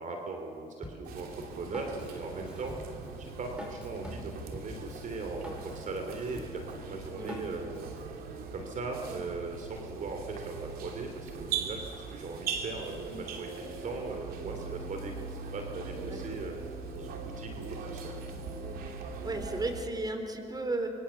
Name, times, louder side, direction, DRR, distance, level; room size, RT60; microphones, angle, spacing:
voice 1, 0.0-2.8 3.2-18.1, right 3 dB, 55° right, 4 dB, 3.1 m, -39 dB
Drum kit, 0.8-8.0, equal, 5° right, 5.7 m, -46 dB
sound 1, 1.1-19.8, right 5 dB, 75° right, 2.9 m, -40 dB
voice 2, 19.2-20.9, right 2 dB, 25° right, 6 dB, 4.0 m, -34 dB
26.0 x 23.5 x 7.2 m, 2.8 s
supercardioid pair, 75°, 16 cm